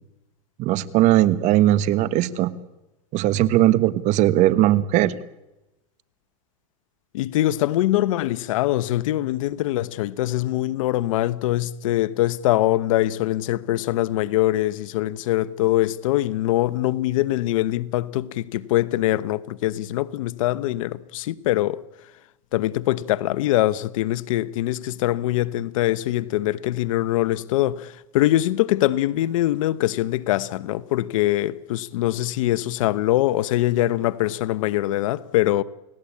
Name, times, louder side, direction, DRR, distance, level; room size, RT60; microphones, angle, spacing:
voice 1, 0.6-2.5 3.1-5.2, right 14 dB, 45° right, 1.5 m, -19 dB
voice 2, 7.1-21.8 22.5-35.6, left 15 dB, 75° left, 1.1 m, -23 dB
29.5 x 18.0 x 8.6 m
supercardioid pair, 130°, 17 cm